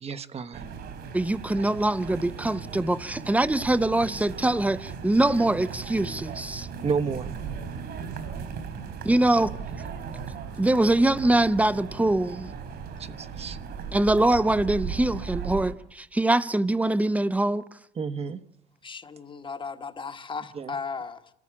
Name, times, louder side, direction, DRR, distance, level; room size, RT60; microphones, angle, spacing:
voice 1, 0.0-0.6 6.8-7.3 13.0-13.6 18.0-18.4 20.5-20.7, right 5 dB, 35° right, 1.1 m, -31 dB
sound 1, 0.5-15.7, right 6 dB, 70° right, 3.9 m, -37 dB
voice 2, 1.1-6.7 9.0-9.5 10.6-12.5 13.9-15.7 16.1-17.6, right 1 dB, 10° right, 0.8 m, -23 dB
voice 3, 18.8-21.3, left 5 dB, 30° left, 1.4 m, -36 dB
26.5 x 14.5 x 8.6 m
cardioid pair, 110°, 17 cm